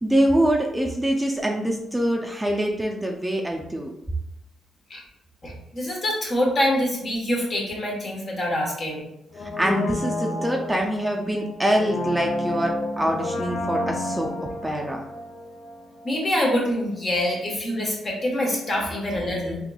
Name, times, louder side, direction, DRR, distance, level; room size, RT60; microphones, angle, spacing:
voice 1, 0.0-3.9 9.4-14.3 14.6-15.0 17.3-17.4, right 1 dB, 10° right, 0 dB, 0.4 m, -24 dB
voice 2, 5.4-9.0 16.0-19.6, left 1 dB, 45° left, -1 dB, 1.2 m, -25 dB
Brass instrument, 9.3-16.2 16.4-16.5, left 1 dB, 75° left, 0.5 m, -30 dB
3.7 x 2.9 x 2.3 m, 0.82 s
cardioid pair, 75°, 0 cm